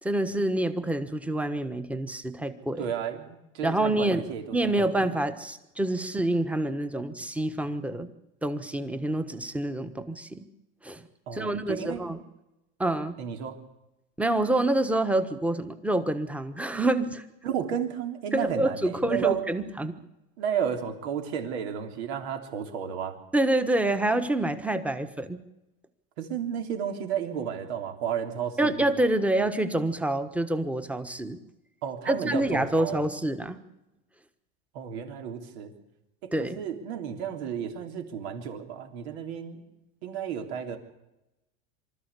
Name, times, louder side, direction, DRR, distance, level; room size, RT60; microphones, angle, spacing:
voice 1, 0.0-2.9 3.6-4.2 4.5-8.1 8.4-10.5 10.8-11.0 11.3-12.2 12.8-13.1 14.2-17.2 18.3-20.0 23.3-25.4 28.6-31.4 32.1-33.6 36.3-36.6, right 1 dB, 5° right, 10 dB, 1.3 m, -27 dB
voice 2, 2.8-4.4 11.3-12.0 13.2-13.6 17.4-19.4 20.4-23.2 26.2-28.8 31.8-33.0 34.7-35.7 36.2-39.6 40.0-40.8, right 8 dB, 75° right, 5 dB, 3.5 m, -32 dB
24.5 x 13.5 x 8.3 m, 0.94 s
supercardioid pair, 140°, 32 cm